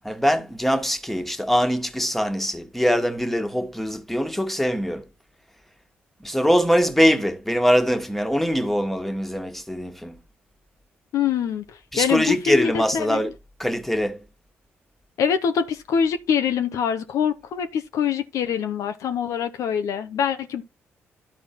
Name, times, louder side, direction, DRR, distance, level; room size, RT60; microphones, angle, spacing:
voice 1, 0.0-5.0 6.2-10.2 11.9-13.3 13.6-14.2, equal, 5° left, 1.7 m, -22 dB
voice 2, 11.1-11.6 12.0-13.2 15.2-20.6, left 7 dB, 70° left, 0.9 m, -24 dB
11.5 x 4.3 x 4.4 m
hypercardioid pair, 45°, 6 cm